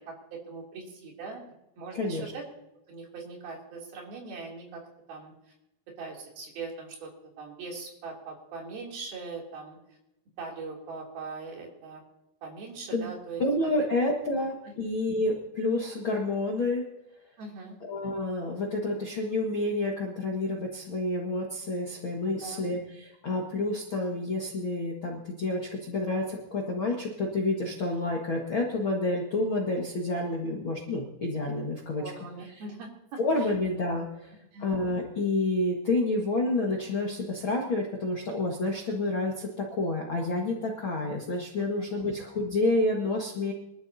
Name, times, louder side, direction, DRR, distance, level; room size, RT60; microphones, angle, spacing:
voice 1, 0.0-2.4 2.9-4.8 5.1-5.3 6.0-7.1 7.4-9.8 10.4-12.0 12.4-13.4 14.7-14.8 17.4-17.8 22.3-22.6 32.0-33.2 34.5-34.7 41.6-42.1, right 4 dB, 60° right, -1 dB, 4.7 m, -41 dB
voice 2, 1.9-2.3 12.9-13.1 13.4-16.9 17.8-32.0 33.2-34.3 34.6-43.5, left 2 dB, 65° left, -1 dB, 1.2 m, -29 dB
24.0 x 13.0 x 2.7 m, 0.88 s
omnidirectional pair, 5.0 m